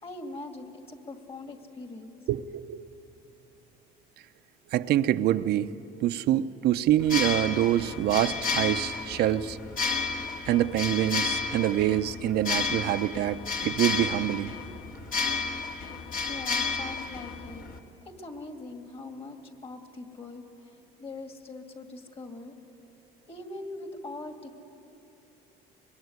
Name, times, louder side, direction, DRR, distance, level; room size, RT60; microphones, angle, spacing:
voice 1, 0.0-2.2 16.3-17.6 18.1-22.5 23.3-24.5, left 2 dB, 35° left, 5 dB, 2.6 m, -42 dB
voice 2, 2.3-2.9 4.7-5.7 6.0-9.6 10.5-14.5, right 12 dB, 70° right, 11 dB, 0.8 m, -26 dB
sound 1, 7.0-17.8, left 5 dB, 55° left, 2.0 m, -32 dB
24.0 x 22.0 x 9.6 m, 2.8 s
cardioid pair, 110°, 17 cm